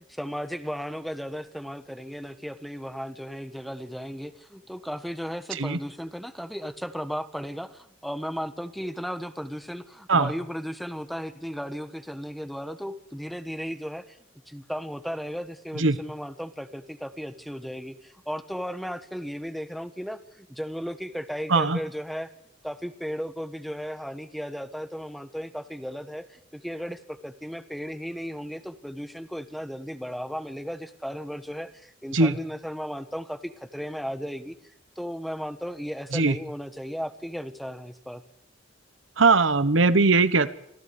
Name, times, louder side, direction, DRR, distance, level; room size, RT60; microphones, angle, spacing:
voice 1, 0.0-14.2 14.5-22.3 22.6-34.5 35.0-38.2, equal, ahead, 10 dB, 1.3 m, -35 dB
voice 2, 39.2-40.5, right 3 dB, 70° right, 16 dB, 1.1 m, -20 dB
26.5 x 15.5 x 8.5 m, 0.78 s
head